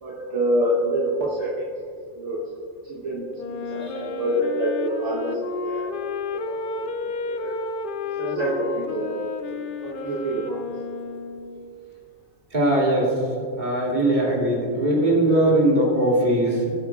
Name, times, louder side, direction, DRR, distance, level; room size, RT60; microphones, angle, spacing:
voice 1, 0.0-1.7 2.1-2.5 2.8-5.4 5.6-5.9 6.3-7.6 8.0-9.6 9.8-10.6, right 1 dB, 65° right, -5 dB, 1.5 m, -27 dB
Wind instrument woodwind instrument, 3.3-11.7, left 4 dB, 55° left, 0.6 m, -32 dB
voice 2, 12.5-13.2 13.6-16.7, right 1 dB, 35° right, -5 dB, 2.6 m, -20 dB
18.0 x 8.5 x 2.4 m, 2.3 s
omnidirectional pair, 1.3 m